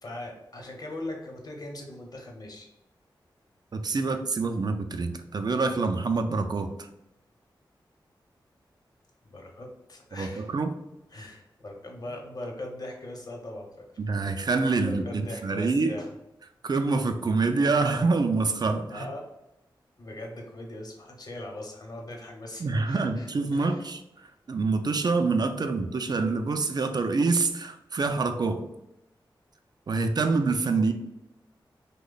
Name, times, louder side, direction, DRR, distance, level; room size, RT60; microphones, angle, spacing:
voice 1, 0.0-2.7 9.2-10.5 11.1-13.9 14.8-16.1 18.9-19.3 20.0-23.8 30.7-30.9, left 1 dB, 50° left, 0 dB, 0.9 m, -40 dB
voice 2, 3.7-6.9 10.1-10.7 14.0-15.9 16.6-19.1 22.6-24.0 24.5-28.6 29.9-30.9, right 3 dB, 50° right, 7 dB, 0.4 m, -26 dB
3.0 x 2.2 x 3.9 m, 0.88 s
cardioid pair, 45°, 9 cm